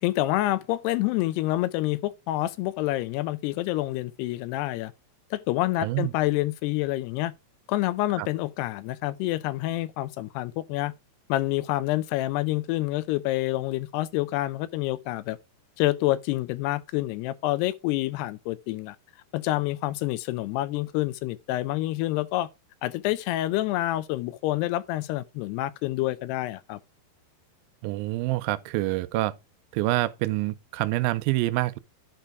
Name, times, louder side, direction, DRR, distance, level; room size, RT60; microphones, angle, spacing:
voice 1, 0.0-4.9 5.3-7.3 7.7-10.9 11.3-15.4 15.8-19.0 19.3-22.5 22.8-26.8, left 16 dB, 90° left, 2.7 m, -27 dB
voice 2, 5.8-6.1 8.2-8.3 27.8-29.3 29.7-31.8, right 18 dB, 80° right, 2.2 m, -26 dB
10.5 x 4.5 x 4.7 m
omnidirectional pair, 4.6 m